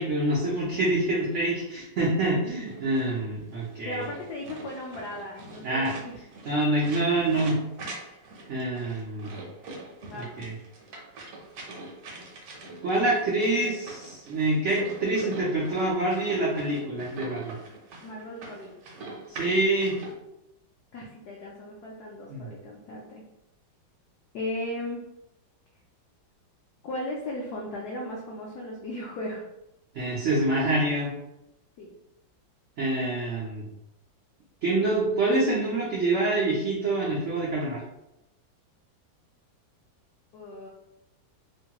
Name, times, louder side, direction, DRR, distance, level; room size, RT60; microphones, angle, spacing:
voice 1, 0.0-4.0 5.6-5.9 6.4-7.6 8.5-9.3 10.4-10.5 12.8-17.5 19.3-20.0 22.3-22.5 29.9-31.1 32.8-33.6 34.6-37.8, right 2 dB, 90° right, -6 dB, 0.6 m, -26 dB
sound 1, 2.7-20.1, right 2 dB, 65° right, 1.0 m, -43 dB
voice 2, 3.8-6.2 10.0-10.3 18.0-18.8 20.9-23.2 24.3-25.0 26.8-29.5 31.8-31.9 40.3-40.7, left 1 dB, 75° left, -2 dB, 0.9 m, -36 dB
3.2 x 2.2 x 2.8 m, 0.89 s
omnidirectional pair, 2.1 m